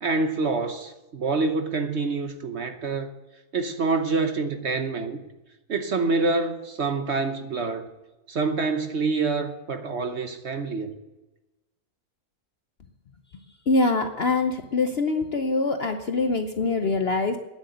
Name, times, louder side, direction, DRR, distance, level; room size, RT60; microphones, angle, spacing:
voice 1, 0.0-3.1 3.5-5.2 5.7-7.9 8.3-10.9, right 3 dB, 50° right, 1.0 m, -26 dB
voice 2, 13.7-17.4, left 3 dB, 50° left, 0.8 m, -24 dB
9.9 x 7.9 x 9.1 m
omnidirectional pair, 1.7 m